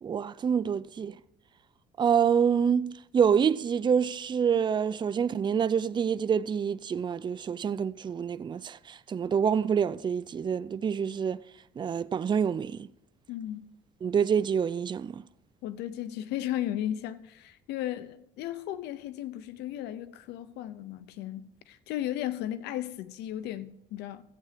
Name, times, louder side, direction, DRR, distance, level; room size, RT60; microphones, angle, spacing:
voice 1, 0.0-1.1 2.0-11.4 11.8-12.9 14.0-15.2, right 7 dB, 25° right, 0.4 m, -27 dB
voice 2, 13.3-13.7 15.6-24.2, left 12 dB, 85° left, 0.7 m, -35 dB
15.0 x 8.7 x 5.0 m
cardioid pair, 110°, 17 cm